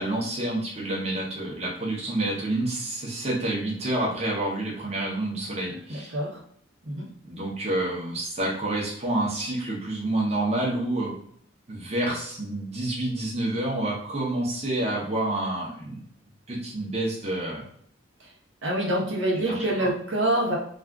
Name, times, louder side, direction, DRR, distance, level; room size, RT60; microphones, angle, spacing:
voice 1, 0.0-6.2 7.2-11.1 11.7-16.0 16.5-17.7 19.3-19.9, right 1 dB, 30° right, -5 dB, 0.8 m, -28 dB
voice 2, 18.6-20.6, right 1 dB, 80° right, -3 dB, 0.9 m, -26 dB
2.5 x 2.4 x 3.4 m, 0.63 s
head